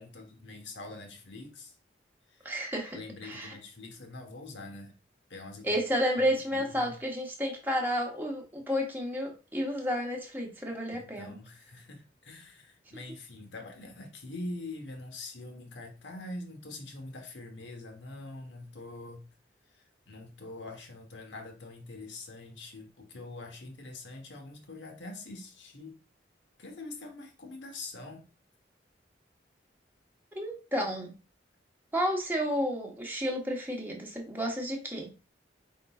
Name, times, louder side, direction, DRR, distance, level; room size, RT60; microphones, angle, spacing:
voice 1, 0.0-1.7 2.3-2.5 2.9-4.9 5.3-5.8 6.2-6.9 10.9-19.2 19.7-25.9 26.6-28.3, left 2 dB, 85° left, 3 dB, 1.1 m, -44 dB
voice 2, 2.4-3.0 3.2-3.5 5.6-11.4 30.3-31.1 31.9-35.1, equal, 10° right, 0 dB, 0.9 m, -31 dB
5.1 x 3.7 x 2.3 m, 0.33 s
head